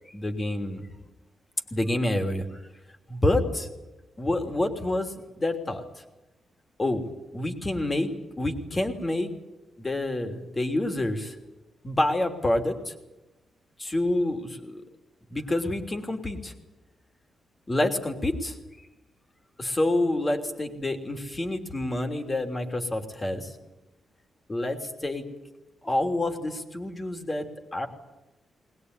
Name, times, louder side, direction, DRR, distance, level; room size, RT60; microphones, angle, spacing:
voice 1, 0.1-0.9 1.7-2.5 3.1-3.7 4.2-5.8 6.8-7.1 7.3-8.1 8.4-9.3 9.8-11.4 11.8-12.9 13.8-14.8 15.3-16.5 17.7-18.6 19.6-23.5 24.5-25.3 25.8-27.5 27.7-27.9, left 1 dB, 20° left, 5 dB, 3.1 m, -27 dB
21.0 x 20.5 x 9.7 m, 1.0 s
wide cardioid pair, 150°, 0 cm